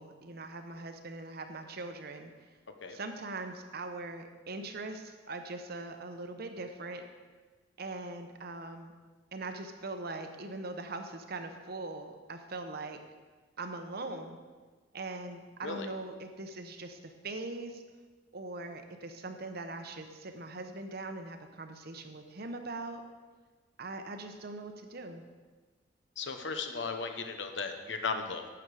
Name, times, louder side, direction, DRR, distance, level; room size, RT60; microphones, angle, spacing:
voice 1, 0.0-2.3 2.9-7.0 7.8-8.9 9.3-13.0 13.6-14.4 14.9-17.8 18.3-23.0 23.8-25.2, right 2 dB, 55° right, 6 dB, 1.0 m, -41 dB
voice 2, 26.2-28.5, left 4 dB, 65° left, 6 dB, 1.0 m, -36 dB
12.0 x 8.2 x 4.9 m, 1.4 s
head